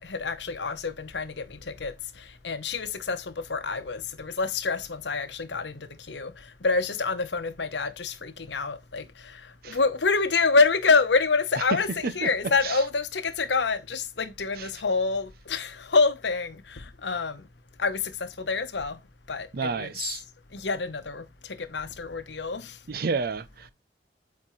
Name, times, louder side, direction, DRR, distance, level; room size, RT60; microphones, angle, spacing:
voice 1, 0.0-6.3 6.6-17.4 17.8-19.0 19.3-19.9 20.5-22.8, left 4 dB, 85° left, 0.9 m, -27 dB
voice 2, 19.5-20.2 22.9-23.7, right 4 dB, 60° right, 0.6 m, -31 dB
8.4 x 4.3 x 3.1 m
head